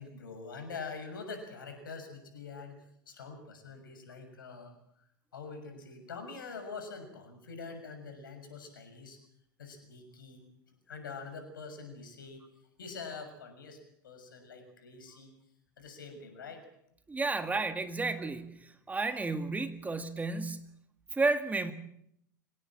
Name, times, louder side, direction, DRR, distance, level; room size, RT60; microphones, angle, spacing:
voice 1, 0.0-2.7 3.1-4.7 5.3-9.2 9.6-10.4 10.9-12.4 12.8-13.8 14.0-15.3 15.8-16.6, left 4 dB, 80° left, 6 dB, 6.6 m, -45 dB
voice 2, 17.1-20.8 21.1-21.7, right 3 dB, 15° right, 8 dB, 2.0 m, -32 dB
25.0 x 18.0 x 7.5 m, 0.74 s
hypercardioid pair, 90°, 11 cm